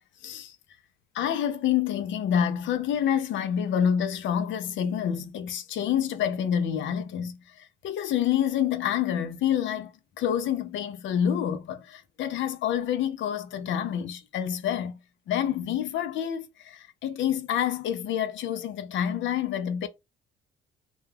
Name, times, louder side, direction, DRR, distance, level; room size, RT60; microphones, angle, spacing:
voice 1, 0.2-0.6 1.1-9.9 10.2-14.9 15.3-19.9, left 9 dB, 70° left, 0.5 m, -28 dB
2.2 x 2.2 x 3.2 m
cardioid pair, 90°, 20 cm